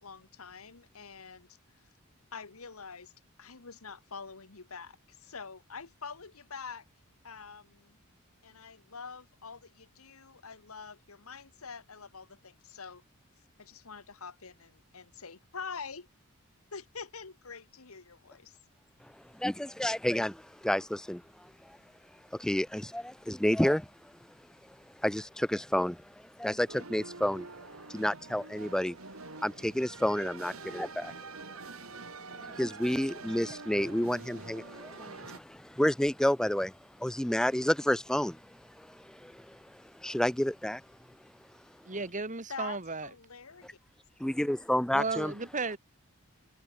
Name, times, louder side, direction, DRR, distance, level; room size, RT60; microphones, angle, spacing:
voice 1, 0.0-1.5 2.3-3.1 3.4-6.8 7.2-8.0 8.4-13.0 13.6-16.1 16.7-18.6 42.5-43.7, left 5 dB, 85° left, 1.6 m, -45 dB
voice 2, 19.3-21.8 22.3-23.9 25.0-26.0 26.4-27.5 27.9-29.0 29.4-31.1 32.3-36.7 37.0-38.4 38.8-40.8 44.2-45.3, left 1 dB, 5° left, 0.4 m, -30 dB
sound 1, 26.7-35.4, right 4 dB, 80° right, 3.6 m, -46 dB
voice 3, 41.9-43.1 44.9-45.8, right 3 dB, 35° right, 2.3 m, -34 dB
head